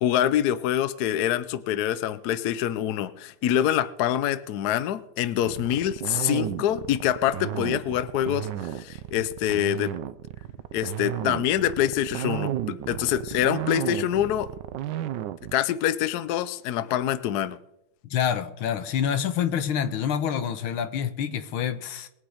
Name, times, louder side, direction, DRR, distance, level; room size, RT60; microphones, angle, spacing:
voice 1, 0.0-9.9 10.7-14.5 15.5-17.6, left 11 dB, 65° left, 1.0 m, -25 dB
sound 1, 5.5-15.6, right 12 dB, 70° right, 1.2 m, -33 dB
voice 2, 18.1-22.1, left 8 dB, 85° left, 1.9 m, -27 dB
21.5 x 8.8 x 5.0 m
omnidirectional pair, 2.2 m